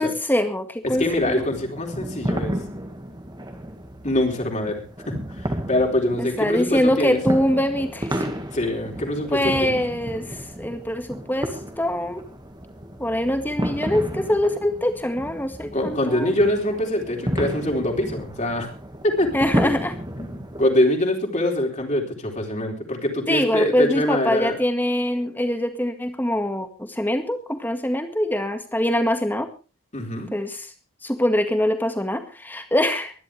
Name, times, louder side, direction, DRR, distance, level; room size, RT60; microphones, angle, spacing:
voice 1, 0.0-1.4 6.2-8.3 9.3-12.2 13.0-16.3 19.3-19.9 23.3-29.5 30.3-30.7 31.0-33.1, left 1 dB, 10° left, 7 dB, 2.0 m, -23 dB
voice 2, 0.8-2.6 4.0-7.2 8.5-9.8 15.7-18.7 19.0-19.3 19.6-19.7 20.2-24.6 29.9-30.3, left 1 dB, 35° left, 1 dB, 4.0 m, -24 dB
sound 1, 0.9-20.7, equal, 20° right, 1.9 m, -32 dB
23.5 x 11.5 x 3.4 m, 0.33 s
head